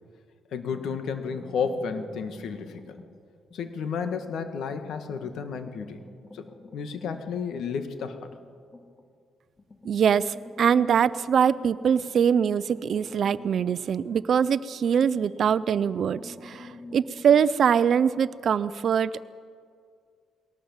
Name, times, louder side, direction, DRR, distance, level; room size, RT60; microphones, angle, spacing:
voice 1, 0.5-3.0 3.5-6.0 6.3-6.5 6.7-8.3, left 6 dB, 70° left, 8 dB, 1.9 m, -32 dB
sound 1, 0.7-3.2 3.5-9.1 9.6-14.6 14.9-18.3, left 2 dB, 25° left, 2.4 m, -48 dB
voice 2, 9.8-19.4, right 7 dB, 55° right, 15 dB, 0.6 m, -23 dB
21.5 x 18.0 x 7.4 m, 2.2 s
cardioid pair, 90°, 0 cm